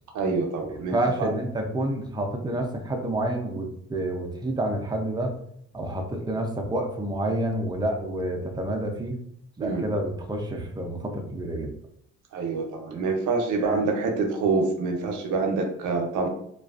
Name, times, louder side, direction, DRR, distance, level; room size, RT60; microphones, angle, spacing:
voice 1, 0.1-1.3 9.6-9.8 12.3-16.3, right 4 dB, 85° right, 3 dB, 0.6 m, -26 dB
voice 2, 0.9-5.3 5.7-9.2 9.6-11.7 12.9-13.0 13.6-13.8, right 1 dB, 15° right, 2 dB, 0.4 m, -29 dB
2.4 x 2.3 x 2.3 m, 0.71 s
cardioid pair, 90°, 30 cm